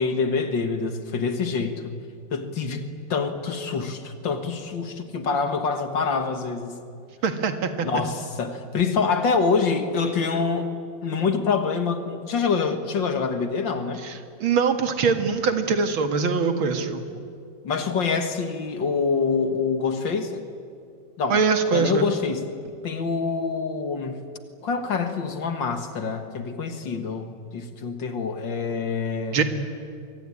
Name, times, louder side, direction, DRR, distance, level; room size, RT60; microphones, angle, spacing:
voice 1, 0.0-1.9 2.3-2.8 3.1-6.8 7.8-10.8 11.0-14.0 17.1-17.3 17.6-20.4 21.2-21.4 21.7-22.5 22.8-24.2 24.6-29.4, left 5 dB, 60° left, 8 dB, 2.3 m, -26 dB
voice 2, 7.2-7.9 14.0-17.0 21.3-22.1 29.3-29.4, right 5 dB, 65° right, 7 dB, 2.6 m, -23 dB
25.0 x 23.0 x 9.9 m, 2.3 s
omnidirectional pair, 2.4 m